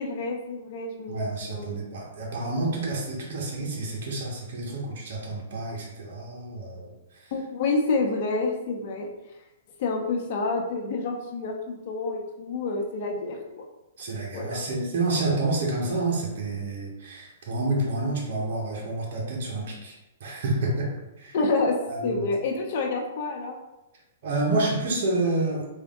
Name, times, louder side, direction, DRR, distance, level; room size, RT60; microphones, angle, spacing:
voice 1, 0.0-1.2 1.5-1.9 7.3-9.1 9.8-13.6 14.3-14.6 21.3-21.8 22.0-23.6, left 3 dB, 50° left, 1 dB, 0.8 m, -28 dB
voice 2, 1.1-6.8 14.0-19.9 20.2-20.9 21.2-21.3 21.9-22.2 24.2-25.6, right 2 dB, 60° right, -3 dB, 1.3 m, -28 dB
3.5 x 2.7 x 3.7 m, 0.99 s
hypercardioid pair, 130°, 0 cm